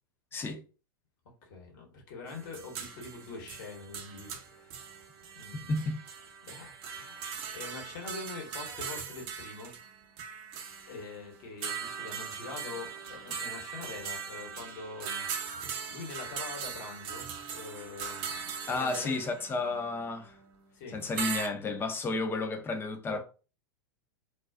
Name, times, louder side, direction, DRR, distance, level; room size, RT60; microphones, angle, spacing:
voice 1, 0.3-0.6 5.7-6.0 18.7-20.3 20.9-23.2, left 3 dB, 20° left, 0.5 m, -32 dB
voice 2, 1.4-5.0 5.3-5.9 6.4-9.7 10.9-15.3 15.5-19.2 20.7-21.0 23.1-23.2, left 4 dB, 55° left, 1.0 m, -44 dB
sound 1, 2.3-21.5, right 6 dB, 45° right, 0.6 m, -40 dB
2.3 x 2.3 x 2.3 m
hypercardioid pair, 95°, 12 cm